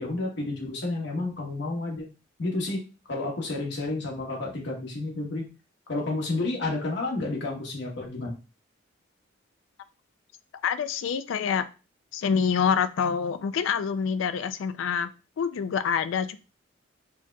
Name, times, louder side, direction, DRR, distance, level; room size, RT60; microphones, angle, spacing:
voice 1, 0.0-2.1 2.4-2.8 3.1-5.5 5.9-8.3, left 2 dB, 60° left, -1 dB, 1.0 m, -30 dB
voice 2, 10.6-11.6 12.1-15.1 15.4-16.4, left 6 dB, 80° left, 12 dB, 0.3 m, -26 dB
4.5 x 2.8 x 2.2 m, 0.33 s
head